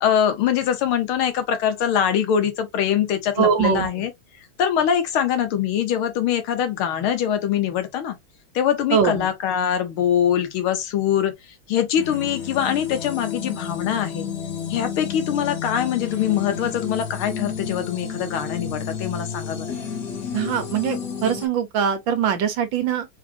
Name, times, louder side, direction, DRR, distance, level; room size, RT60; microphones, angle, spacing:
voice 1, 0.0-4.1 4.6-8.2 8.6-11.3 11.7-14.3 14.7-19.8, left 9 dB, 85° left, 1.8 m, -23 dB
voice 2, 3.4-3.9 8.9-9.3 20.3-23.1, right 8 dB, 70° right, 1.5 m, -22 dB
sound 1, 12.0-21.5, left 7 dB, 50° left, 1.2 m, -31 dB
4.0 x 3.4 x 2.6 m
omnidirectional pair, 2.3 m